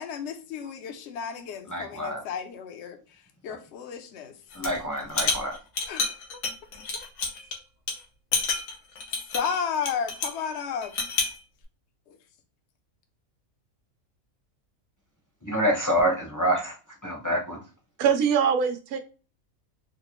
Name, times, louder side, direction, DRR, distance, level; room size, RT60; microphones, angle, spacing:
voice 1, 0.0-3.0 3.4-4.3 5.9-6.2 6.9-7.1 9.3-10.9 12.1-12.2, left 7 dB, 60° left, 0.8 m, -33 dB
voice 2, 1.7-2.2 4.5-5.6 15.4-16.7 17.0-17.6, equal, 15° left, 0.7 m, -26 dB
sound 1, 4.5-4.8 5.1-7.5 7.9-8.0 8.3-10.4 10.8-11.4, left 4 dB, 85° left, 1.3 m, -29 dB
voice 3, 18.0-19.0, right 7 dB, 90° right, 1.1 m, -23 dB
3.9 x 2.1 x 3.0 m
omnidirectional pair, 1.5 m